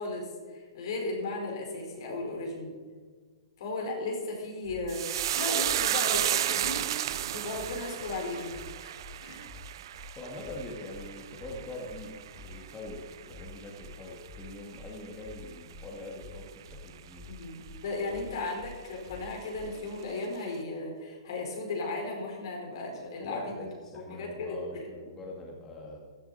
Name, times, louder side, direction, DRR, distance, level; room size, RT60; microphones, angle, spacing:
voice 1, 0.0-2.8 3.6-6.9 7.3-8.6 8.8-9.4 17.3-23.5 23.9-24.9, left 2 dB, 60° left, 0 dB, 4.7 m, -35 dB
sound 1, 4.6-4.8 5.1-5.3 5.6-5.8 6.1-6.2 6.6-6.7 7.0-7.2 7.5-7.7 8.0-8.2 8.5-8.6 9.0-9.1 9.4-9.6 9.9-10.1 10.4-10.6 10.9-11.0 11.4-11.5 11.8-12.0 12.3-12.5 12.8-13.0 13.3-13.4 13.8-13.9 14.2-14.4 14.7-14.9 15.2-15.4 15.7-15.8 16.2-16.3 16.6-16.8 17.1-17.3 17.6-17.8 18.1-18.2 18.6-18.7 19.0-19.2 19.5-19.7, left 2 dB, 40° left, 3.9 m, -49 dB
sound 2, 4.9-13.5 13.8-14.5 14.7-15.0, right 12 dB, 60° right, 0.4 m, -33 dB
voice 2, 10.2-17.3 23.2-26.0, left 2 dB, 15° left, -2 dB, 2.2 m, -43 dB
15.5 x 11.5 x 4.3 m, 1.5 s
hypercardioid pair, 140°, 3 cm